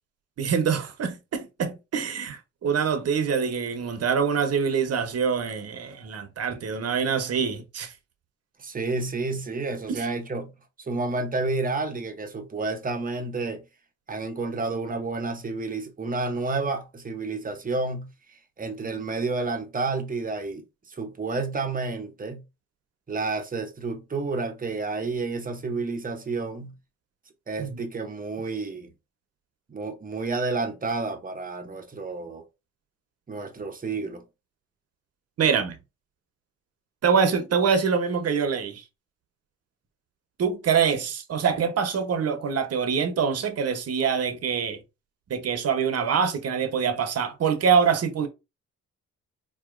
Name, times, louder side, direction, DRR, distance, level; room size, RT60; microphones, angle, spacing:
voice 1, 0.4-7.9 9.9-10.1 27.6-27.8 35.4-35.8 37.0-38.8 40.4-44.8 45.3-48.3, right 6 dB, 55° right, 1.0 m, -25 dB
voice 2, 8.6-10.5 10.9-13.6 14.1-18.1 18.6-22.4 23.1-26.7 27.5-28.9 29.7-32.4 33.3-34.2, right 3 dB, 30° right, 1.0 m, -30 dB
4.3 x 2.9 x 2.5 m
cardioid pair, 90°, 30 cm